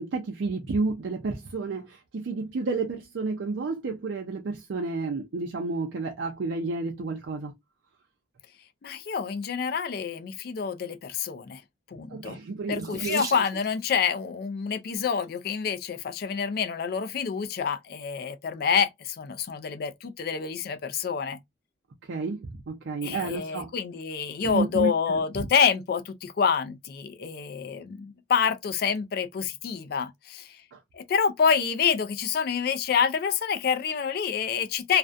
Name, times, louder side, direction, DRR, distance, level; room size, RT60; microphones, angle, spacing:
voice 1, 0.0-7.5 12.1-13.4 22.0-23.7 24.4-25.5 30.7-30.8, right 3 dB, 75° right, 0.4 m, -31 dB
voice 2, 8.8-11.6 11.9-12.4 12.7-21.4 23.0-30.6 30.9-35.0, left 6 dB, 50° left, 0.3 m, -27 dB
Water tap faucet / Sink (filling or washing), 12.7-14.0 15.0-15.4 16.1-16.2 16.5-16.6, right 3 dB, 20° right, 0.5 m, -40 dB
2.4 x 2.1 x 2.4 m
head